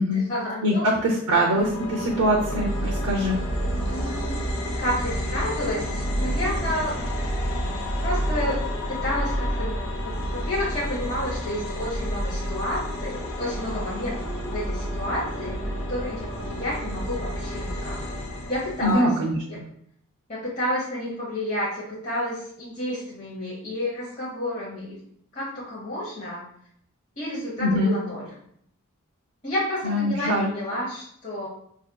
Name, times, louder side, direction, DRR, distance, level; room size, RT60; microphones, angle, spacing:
voice 1, 0.1-0.9 1.3-1.4 3.9-4.4 4.8-7.0 8.0-8.6 8.9-9.7 10.0-18.1 18.5-19.1 19.5-19.6 20.3-25.0 25.3-26.4 27.2-28.2 29.4-31.5, left 1 dB, 35° left, -7 dB, 0.9 m, -30 dB
voice 2, 1.0-3.4 18.8-19.4 27.6-27.9 29.8-30.5, equal, 90° right, -2 dB, 0.6 m, -23 dB
sound 1, 1.5-18.9, equal, 70° left, 0.8 m, -29 dB
4.9 x 2.7 x 2.2 m, 0.67 s
head